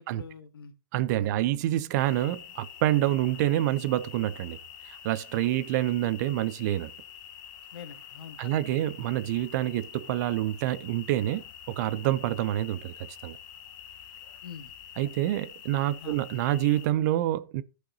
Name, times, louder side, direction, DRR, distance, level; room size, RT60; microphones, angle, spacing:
voice 1, 0.0-0.7 1.2-1.3 3.2-3.3 5.5-5.7 7.7-8.6 14.4-14.7 16.0-16.2, left 7 dB, 75° left, 1.1 m, -45 dB
voice 2, 0.9-4.6 4.9-6.9 8.4-12.9 13.2-13.4 15.0-17.6, right 14 dB, 50° right, 0.5 m, -27 dB
sound 1, 2.0-16.9, left 9 dB, 50° left, 1.1 m, -47 dB
14.5 x 5.7 x 2.7 m
hypercardioid pair, 120°, 12 cm